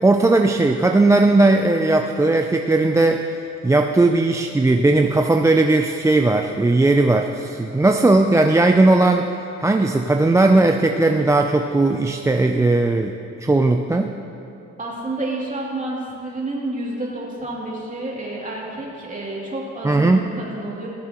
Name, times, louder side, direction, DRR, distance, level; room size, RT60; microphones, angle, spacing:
voice 1, 0.0-9.3 9.6-13.1 13.4-14.1 19.8-20.2, right 2 dB, 10° right, 4 dB, 0.4 m, -17 dB
voice 2, 14.8-20.9, right 2 dB, 25° right, -4 dB, 2.7 m, -29 dB
18.0 x 7.4 x 3.0 m, 2.8 s
cardioid pair, 90°, 30 cm